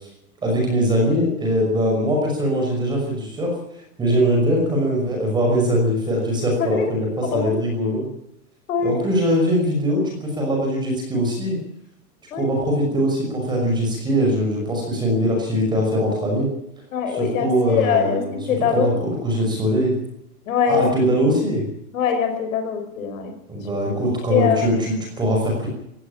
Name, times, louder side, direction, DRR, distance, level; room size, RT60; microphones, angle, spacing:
voice 1, 0.4-3.6 4.0-8.1 8.8-11.6 12.3-16.5 17.1-18.3 18.7-19.9 20.7-21.7 23.5-25.7, equal, 10° right, 1 dB, 5.8 m, -21 dB
voice 2, 7.2-7.6 8.7-9.1 12.3-12.5 16.9-18.9 20.5-20.9 21.9-23.3 24.3-24.6, left 7 dB, 55° left, 7 dB, 5.4 m, -22 dB
19.0 x 16.5 x 8.8 m, 0.79 s
supercardioid pair, 175°, 47 cm